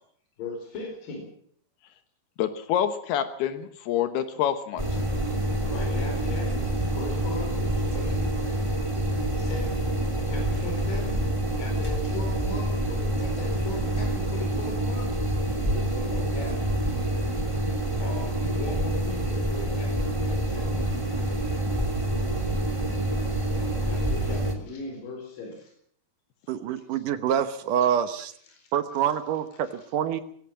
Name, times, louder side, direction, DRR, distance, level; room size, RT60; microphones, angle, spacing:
voice 1, 0.4-1.3 5.7-8.3 9.4-9.9 10.2-11.3 11.6-15.1 15.7-17.1 17.7-20.7 22.9-23.1 23.6-25.7 28.5-28.7, left 2 dB, 60° left, 2 dB, 6.1 m, -39 dB
voice 2, 2.4-4.9, left 10 dB, 80° left, 10 dB, 3.1 m, -27 dB
sound 1, 4.8-24.6, right 1 dB, 10° right, 1.9 m, -27 dB
voice 3, 26.5-28.3 28.7-30.2, right 9 dB, 65° right, 11 dB, 2.3 m, -26 dB
20.5 x 17.0 x 7.5 m, 0.62 s
omnidirectional pair, 4.6 m